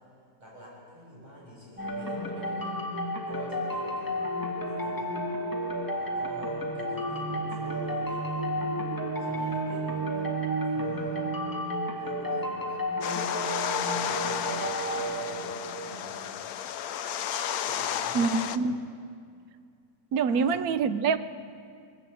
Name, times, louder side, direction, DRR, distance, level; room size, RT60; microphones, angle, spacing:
voice 1, 0.4-2.7 3.3-4.4 4.7-5.3 5.9-8.5 9.2-10.3 10.6-11.3 12.0-12.9 13.9-15.6 15.8-16.4 17.6-18.6 20.2-20.8, equal, 25° right, -6 dB, 7.8 m, -47 dB
sound 1, 1.8-16.2, right 1 dB, 15° left, 1.8 m, -32 dB
sound 2, 13.0-18.6, left 10 dB, 75° left, 1.1 m, -32 dB
voice 2, 18.1-18.8 20.1-21.2, right 5 dB, 70° right, 12 dB, 1.2 m, -25 dB
21.5 x 15.0 x 8.4 m, 2.2 s
omnidirectional pair, 1.6 m